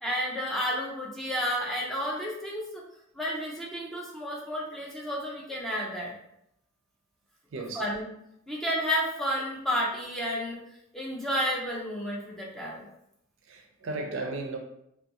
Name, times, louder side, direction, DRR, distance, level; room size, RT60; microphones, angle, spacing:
voice 1, 0.0-2.8 3.2-6.1 7.5-8.1 8.5-10.6 10.9-12.9, equal, ahead, 0.4 m, -31 dB
voice 2, 7.5-7.8 13.5-14.6, right 2 dB, 70° right, 0.4 m, -35 dB
2.4 x 2.2 x 2.8 m
head